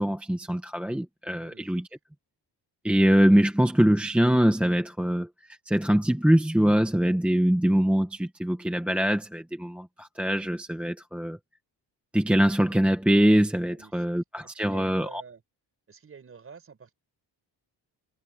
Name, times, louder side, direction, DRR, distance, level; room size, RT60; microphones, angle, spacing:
voice 1, 0.0-1.9 2.8-5.3 5.7-11.4 12.1-15.2, equal, 5° right, 0.9 m, -23 dB
voice 2, 1.3-1.8 13.7-15.4 15.9-16.9, right 6 dB, 30° right, 6.8 m, -49 dB
cardioid pair, 175°, 43 cm